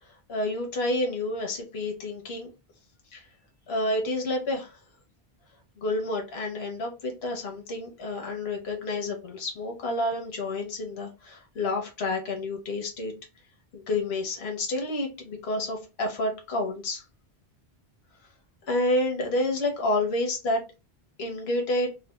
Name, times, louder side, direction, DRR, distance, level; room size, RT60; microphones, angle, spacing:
voice 1, 0.3-2.5 3.7-4.8 5.8-13.1 13.7-17.0 18.7-20.6 21.2-21.9, left 2 dB, 80° left, 2 dB, 1.1 m, -29 dB
4.0 x 2.3 x 2.2 m, 0.27 s
omnidirectional pair, 1.1 m